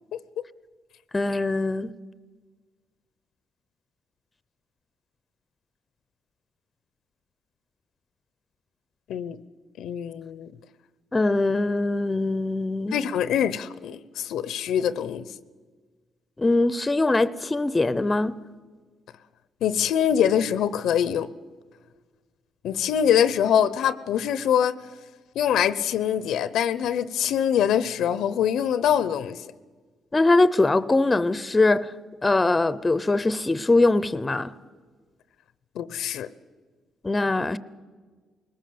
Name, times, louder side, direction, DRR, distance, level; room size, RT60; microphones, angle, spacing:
voice 1, 1.1-1.9 11.1-13.0 16.4-18.3 30.1-31.9 32.2-34.5 37.0-37.6, left 2 dB, 20° left, 0.7 m, -22 dB
voice 2, 9.8-10.5 12.9-15.2 19.6-21.3 22.6-24.8 25.3-29.4 35.7-36.3, left 9 dB, 80° left, 0.7 m, -24 dB
21.0 x 19.0 x 7.8 m
cardioid pair, 90°, 0 cm